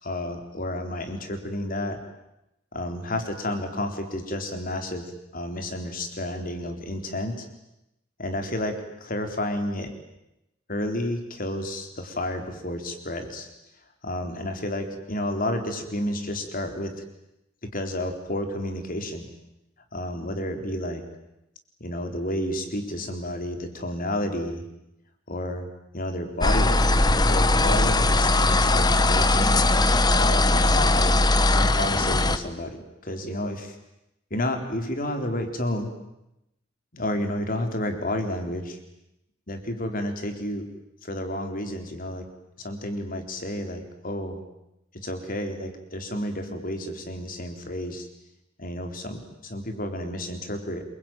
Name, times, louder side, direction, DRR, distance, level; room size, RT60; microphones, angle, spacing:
voice 1, 0.0-2.0 2.7-7.5 8.2-9.9 10.7-13.5 14.0-17.0 17.7-19.3 19.9-21.0 21.8-24.6 25.3-25.7 25.9-29.6 30.1-31.2 31.5-32.8 33.0-33.7 34.3-35.9 36.9-38.8 39.5-40.6 41.0-42.2 42.6-44.4 45.0-48.1 48.6-50.8, left 1 dB, 45° left, 6 dB, 4.0 m, -31 dB
sound 1, 26.4-32.4, left 2 dB, 20° left, 1.1 m, -20 dB
27.0 x 23.5 x 9.3 m, 0.88 s
head